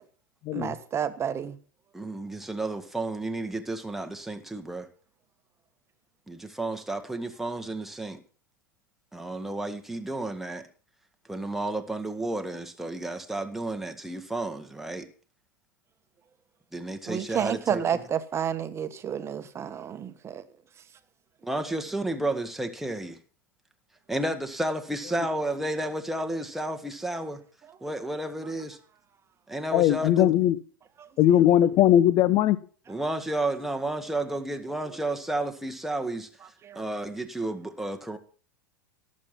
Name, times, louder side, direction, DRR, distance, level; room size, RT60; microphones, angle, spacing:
voice 1, 0.5-1.6 17.1-20.4 27.8-27.9 31.0-31.1 36.6-36.8, right 8 dB, 25° right, 1.3 m, -30 dB
voice 2, 1.9-4.9 6.3-8.2 9.1-10.7 11.3-15.1 16.7-18.0 21.4-23.2 24.1-27.4 27.8-28.8 29.5-30.3 32.9-36.3 36.7-38.2, right 2 dB, 5° right, 1.7 m, -32 dB
voice 3, 29.7-30.6 31.2-32.6, left 11 dB, 40° left, 1.0 m, -20 dB
17.5 x 7.6 x 5.9 m
figure-of-eight pair, 90°, 11 cm